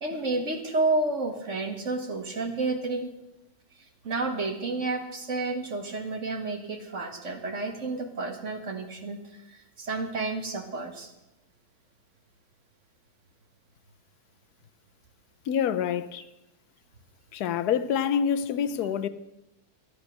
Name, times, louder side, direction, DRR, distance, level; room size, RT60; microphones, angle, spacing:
voice 1, 0.0-3.1 4.0-11.1, right 3 dB, 50° right, 1.9 m, -30 dB
voice 2, 15.5-16.2 17.3-19.1, left 8 dB, 90° left, 1.3 m, -26 dB
13.0 x 10.5 x 6.5 m
omnidirectional pair, 1.7 m